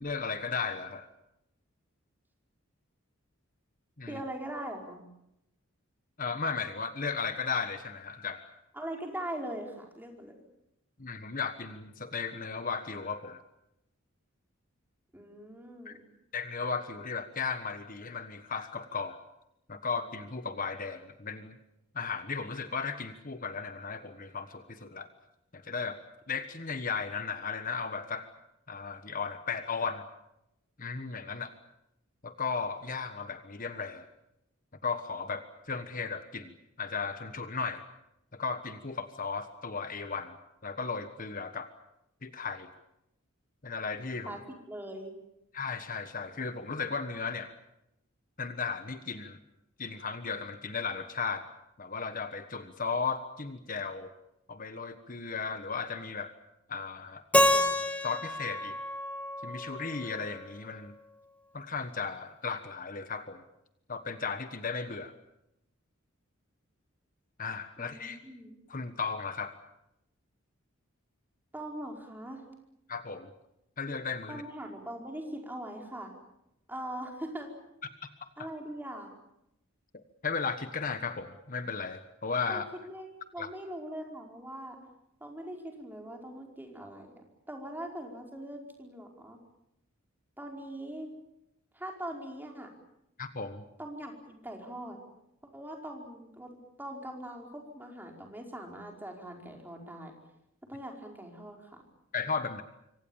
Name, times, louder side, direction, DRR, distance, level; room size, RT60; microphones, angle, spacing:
voice 1, 0.0-1.1 4.0-4.2 6.2-8.5 11.0-13.4 15.8-16.0 16.3-19.2 19.7-21.6 21.9-25.1 25.5-26.0 26.3-28.3 28.7-30.0 30.8-31.5 32.2-34.0 34.8-37.8 38.3-40.4 40.6-41.7 42.2-42.7 43.6-44.4 45.5-47.5 48.4-49.4 49.8-51.5 51.8-54.1 54.5-56.3 56.7-57.2 58.0-58.8 59.4-60.9 61.5-63.4 63.9-65.1 67.4-68.2 68.7-69.5 72.9-73.3 73.8-74.4 79.9-82.6 83.4-83.5 93.2-93.6 102.1-102.6, left 5 dB, 40° left, 9 dB, 1.3 m, -35 dB
voice 2, 4.1-5.0 8.7-10.3 15.1-16.0 44.2-45.1 67.8-68.5 71.5-72.4 74.3-76.1 76.7-77.5 78.4-79.1 82.5-83.1 83.3-84.8 85.2-89.4 90.4-91.1 91.7-92.7 93.8-95.0 95.5-100.1 100.6-101.8, right 1 dB, 10° right, 2 dB, 4.9 m, -41 dB
Keyboard (musical), 57.3-60.3, left 1 dB, 5° left, 1.7 m, -28 dB
26.5 x 25.0 x 7.3 m, 0.84 s
head